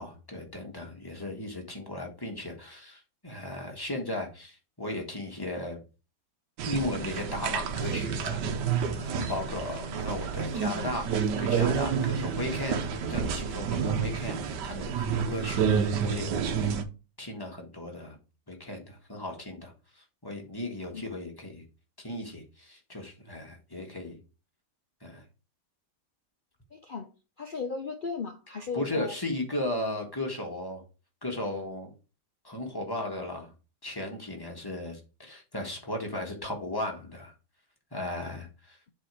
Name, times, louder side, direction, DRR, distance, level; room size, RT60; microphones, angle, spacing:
voice 1, 0.0-5.8 6.6-8.4 8.9-16.3 17.2-18.2 18.5-19.7 20.2-21.6 22.0-24.2 25.0-25.2 28.7-30.8 31.2-31.9 32.4-33.5 33.8-37.3 37.9-38.8, left 1 dB, 15° left, 1 dB, 1.5 m, -36 dB
sound 1, 6.6-16.8, right 6 dB, 85° right, 1.4 m, -29 dB
voice 2, 26.7-27.1 27.4-29.1, left 5 dB, 60° left, 4 dB, 0.5 m, -36 dB
7.5 x 3.6 x 4.8 m, 0.32 s
omnidirectional pair, 1.8 m